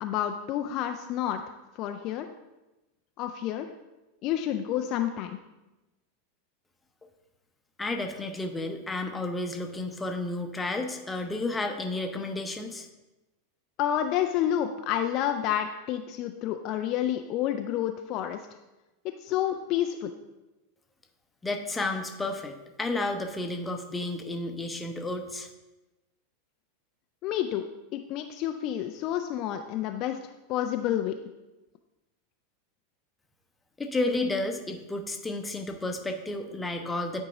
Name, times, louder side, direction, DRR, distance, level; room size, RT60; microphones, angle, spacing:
voice 1, 0.0-2.3 3.2-3.7 4.2-5.3 13.8-18.4 19.0-20.1 27.2-31.1, left 11 dB, 45° left, 6 dB, 0.4 m, -29 dB
voice 2, 7.8-12.9 21.4-25.5 33.8-37.2, left 2 dB, 10° left, 5 dB, 0.8 m, -32 dB
9.6 x 4.7 x 3.8 m, 1.0 s
figure-of-eight pair, 85°, 0 cm